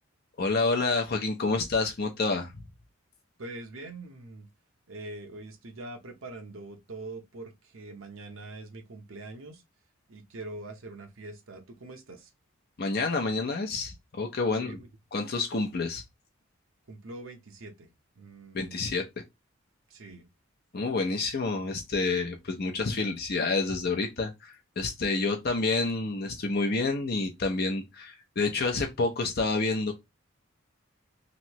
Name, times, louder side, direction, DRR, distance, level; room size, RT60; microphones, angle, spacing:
voice 1, 0.4-2.6 12.8-14.8 15.1-16.0 18.5-19.0 20.7-29.9, left 3 dB, 45° left, 0.5 m, -28 dB
voice 2, 3.4-4.5 4.9-9.6 10.1-12.3 14.6-14.9 16.9-17.9 18.2-18.9 19.9-20.3, right 2 dB, 70° right, 0.7 m, -43 dB
3.1 x 2.7 x 2.9 m
head